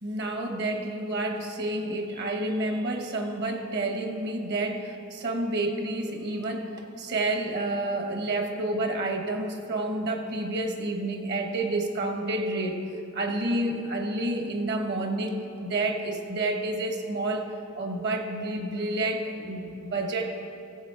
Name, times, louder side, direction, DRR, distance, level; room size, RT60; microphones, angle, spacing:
voice 1, 0.0-12.8 13.1-20.3, right 2 dB, 50° right, 4 dB, 1.2 m, -29 dB
15.0 x 7.8 x 4.6 m, 2.8 s
head